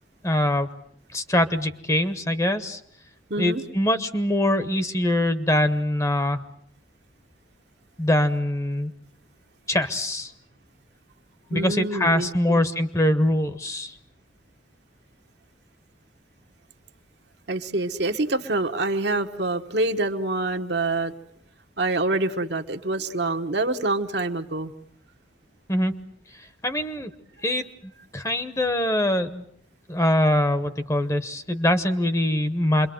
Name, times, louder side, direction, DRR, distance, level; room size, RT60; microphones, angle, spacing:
voice 1, 0.2-0.7 1.1-2.8 3.4-6.4 8.0-8.9 9.7-10.3 11.5-13.9 25.7-25.9 26.3-27.1 27.4-29.4 29.9-32.9, left 1 dB, 15° left, 10 dB, 1.0 m, -23 dB
voice 2, 3.3-3.6 11.5-12.6 17.5-21.1 21.8-24.7, right 2 dB, 60° right, 5 dB, 1.3 m, -26 dB
27.5 x 23.0 x 7.9 m, 0.69 s
head